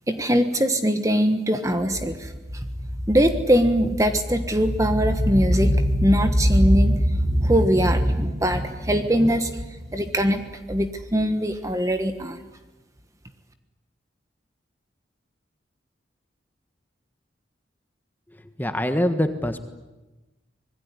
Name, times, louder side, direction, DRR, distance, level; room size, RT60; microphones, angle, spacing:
voice 1, 0.1-2.7 3.1-9.5 9.9-10.4 10.7-12.4, equal, 15° right, 8 dB, 1.3 m, -21 dB
voice 2, 18.6-19.6, left 1 dB, 10° left, 8 dB, 1.5 m, -24 dB
25.5 x 21.0 x 9.8 m, 1.1 s
head